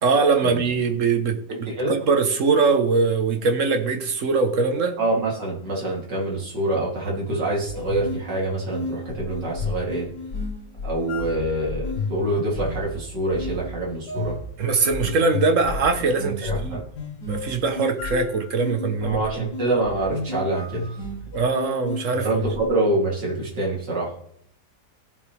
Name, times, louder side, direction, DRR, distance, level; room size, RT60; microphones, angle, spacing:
voice 1, 0.0-1.4 1.9-5.0 14.6-16.8 17.3-19.5 21.3-22.3, right 4 dB, 50° right, 6 dB, 1.4 m, -22 dB
voice 2, 1.5-2.0 5.0-10.1 10.8-14.4 15.0-15.1 16.4-16.8 19.0-21.0 22.2-24.1, right 2 dB, 85° right, -4 dB, 3.7 m, -26 dB
sound 1, 7.3-22.7, left 3 dB, 70° left, 2.5 m, -33 dB
16.5 x 7.3 x 3.4 m, 0.68 s
omnidirectional pair, 1.8 m